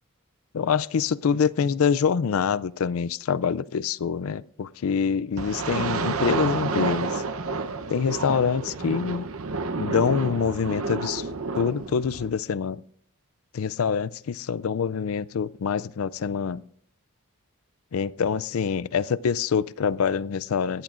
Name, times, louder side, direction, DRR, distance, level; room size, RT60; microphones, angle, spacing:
voice 1, 0.5-7.2 7.9-9.3 9.8-11.3 11.6-12.8 13.5-16.6 17.9-20.8, left 6 dB, 70° left, 0.4 m, -25 dB
sound 1, 5.4-12.3, right 3 dB, 70° right, 0.8 m, -30 dB
19.5 x 14.5 x 2.5 m
head